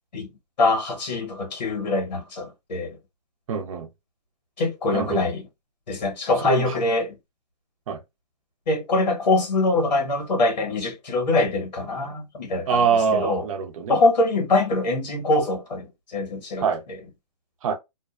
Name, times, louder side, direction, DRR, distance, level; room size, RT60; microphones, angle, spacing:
voice 1, 0.6-3.0 4.6-5.4 5.9-7.2 8.7-12.8 13.1-13.4 13.9-17.0, left 2 dB, 80° left, 1.3 m, -23 dB
voice 2, 3.5-3.9 4.9-5.2 6.4-6.7 7.9-8.0 12.7-14.0 16.6-16.8 17.6-17.7, right 6 dB, 50° right, 0.6 m, -23 dB
2.5 x 2.1 x 2.3 m
hypercardioid pair, 145°, 21 cm